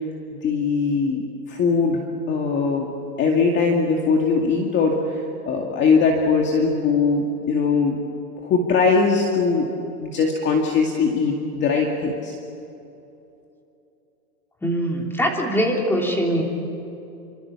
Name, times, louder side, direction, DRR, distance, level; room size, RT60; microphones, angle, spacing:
voice 1, 0.4-1.2 1.5-2.0 2.3-2.9 3.2-8.0 8.4-9.7 10.0-12.3, left 4 dB, 20° left, 1 dB, 2.2 m, -20 dB
voice 2, 14.6-16.4, equal, 5° left, 0 dB, 3.3 m, -22 dB
29.0 x 25.5 x 7.2 m, 2.9 s
hypercardioid pair, 150°, 48 cm